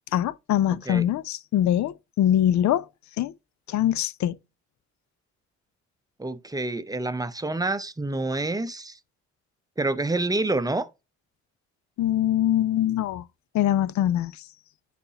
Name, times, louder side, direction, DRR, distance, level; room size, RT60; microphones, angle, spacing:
voice 1, 0.1-2.9 3.2-3.3 3.7-4.4 12.0-13.2 13.5-14.4, left 11 dB, 70° left, 0.5 m, -23 dB
voice 2, 6.2-9.0 9.8-10.9, right 2 dB, 10° right, 0.6 m, -27 dB
9.7 x 4.1 x 2.8 m
cardioid pair, 90°, 30 cm